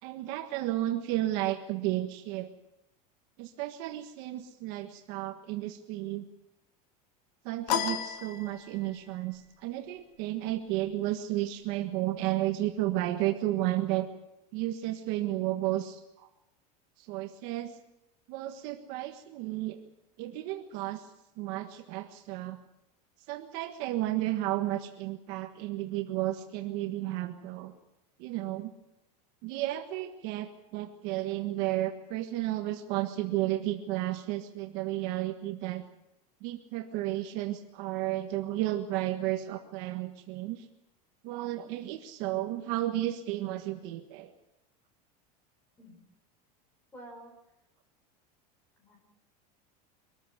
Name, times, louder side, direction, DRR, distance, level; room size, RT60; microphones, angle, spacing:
voice 1, 0.0-2.5 3.4-6.3 7.4-14.1 14.5-16.3 17.0-17.8 18.3-19.8 20.2-21.1 21.4-22.6 23.3-27.7 28.2-28.7 29.4-35.8 36.4-40.7 41.2-44.3, right 15 dB, 45° right, 5 dB, 1.5 m, -33 dB
sound 1, 7.7-9.0, left 8 dB, 80° left, 2.1 m, -32 dB
voice 2, 46.9-47.4 48.8-49.0, right 1 dB, 10° left, 3 dB, 5.6 m, -49 dB
24.0 x 14.0 x 9.3 m, 0.92 s
supercardioid pair, 175°, 21 cm